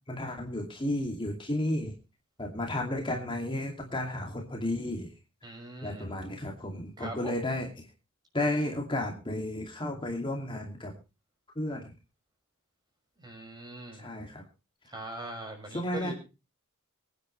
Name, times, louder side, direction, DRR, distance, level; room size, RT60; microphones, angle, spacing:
voice 1, 0.1-1.9 2.4-5.1 5.8-7.9 8.3-10.9 11.6-11.9 13.9-14.4 15.7-16.1, left 1 dB, 25° left, 1 dB, 2.5 m, -33 dB
voice 2, 5.4-6.1 7.0-7.4 13.2-14.1 14.9-16.1, right 1 dB, 20° right, 3 dB, 6.1 m, -41 dB
25.0 x 9.9 x 3.3 m, 0.31 s
head